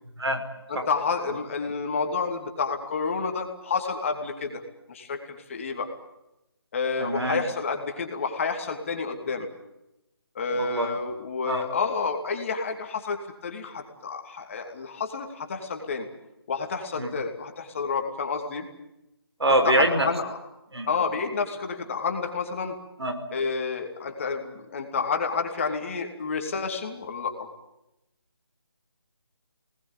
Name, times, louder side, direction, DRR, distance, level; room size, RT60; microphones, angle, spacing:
voice 1, 0.7-4.6 4.9-5.9 6.7-9.5 10.3-16.1 16.5-18.7 19.6-20.4 20.9-22.8 23.3-27.5, left 5 dB, 30° left, 4 dB, 2.8 m, -29 dB
voice 2, 7.0-7.4 10.6-10.9 11.5-11.6 17.0-17.1 19.4-20.1 20.7-20.9 23.0-23.1, right 1 dB, 85° right, 7 dB, 5.4 m, -24 dB
24.5 x 19.5 x 8.9 m, 0.92 s
figure-of-eight pair, 165°, 13 cm